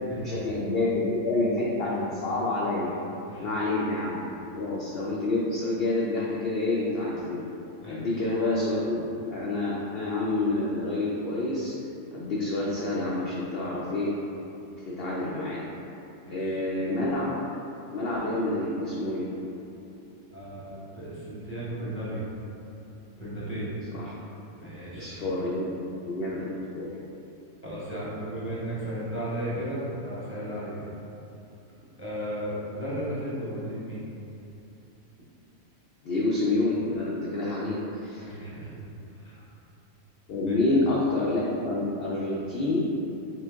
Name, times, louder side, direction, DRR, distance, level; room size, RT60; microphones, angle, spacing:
voice 1, 0.2-2.9 3.4-4.2 4.5-7.5 7.8-9.0 9.3-11.7 12.1-14.1 14.9-15.6 16.3-17.4 17.9-19.3 23.9-24.1 25.0-25.7 26.1-26.4 26.7-26.9 36.0-38.3 40.3-42.8, left 2 dB, 75° left, -5 dB, 0.5 m, -28 dB
voice 2, 16.2-16.6 20.3-22.3 23.2-23.7 24.6-25.3 25.6-25.7 27.6-31.0 32.0-34.0 38.2-38.8 39.2-39.3 40.5-40.7, right 1 dB, 10° right, -9 dB, 0.7 m, -35 dB
5.9 x 2.0 x 3.4 m, 2.9 s
omnidirectional pair, 1.6 m